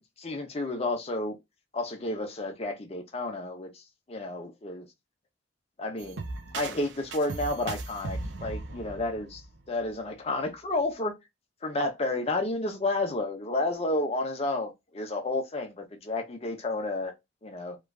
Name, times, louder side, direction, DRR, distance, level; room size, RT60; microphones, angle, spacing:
voice 1, 0.0-1.4 1.7-3.8 4.1-4.9 5.8-6.2 6.5-9.4 9.7-11.2 11.6-17.1 17.4-17.8, left 2 dB, 30° left, 0.6 m, -31 dB
sound 1, 6.0-9.9, right 3 dB, 65° right, 0.6 m, -38 dB
3.0 x 2.3 x 2.3 m
head